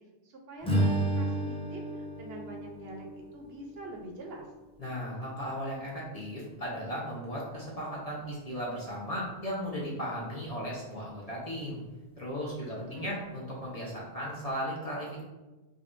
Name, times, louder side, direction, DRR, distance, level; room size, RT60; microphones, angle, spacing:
voice 1, 0.0-4.5 12.7-13.2, right 1 dB, 65° right, 1 dB, 0.8 m, -45 dB
Strum, 0.6-5.0, right 1 dB, 10° left, 0.4 m, -32 dB
voice 2, 4.8-11.8 12.2-15.2, equal, 40° left, -5 dB, 0.7 m, -36 dB
5.1 x 2.3 x 2.5 m, 1.1 s
omnidirectional pair, 1.2 m